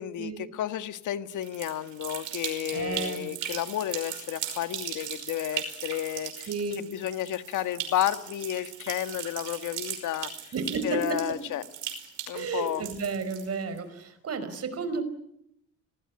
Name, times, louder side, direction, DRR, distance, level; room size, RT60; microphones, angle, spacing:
voice 1, 0.0-6.5 6.8-10.5 10.8-11.6 12.3-12.8, left 12 dB, 80° left, 11 dB, 1.6 m, -32 dB
sound 1, 1.3-13.8, right 9 dB, 85° right, 5.5 m, -38 dB
voice 2, 2.7-3.3 6.5-6.9 10.5-11.2 12.3-15.0, right 4 dB, 55° right, 11 dB, 5.2 m, -32 dB
26.5 x 19.5 x 9.8 m, 0.76 s
cardioid pair, 90°, 30 cm